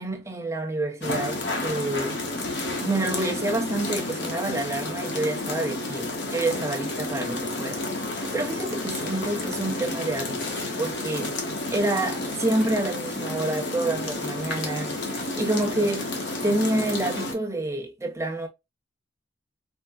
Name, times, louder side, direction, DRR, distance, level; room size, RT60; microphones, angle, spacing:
voice 1, 0.0-2.2 2.8-7.8 8.1-11.4 11.7-16.1 16.4-18.5, right 2 dB, 15° right, 0.7 m, -28 dB
sound 1, 1.0-17.3, left 2 dB, 70° left, 1.0 m, -31 dB
4.4 x 2.2 x 2.3 m
head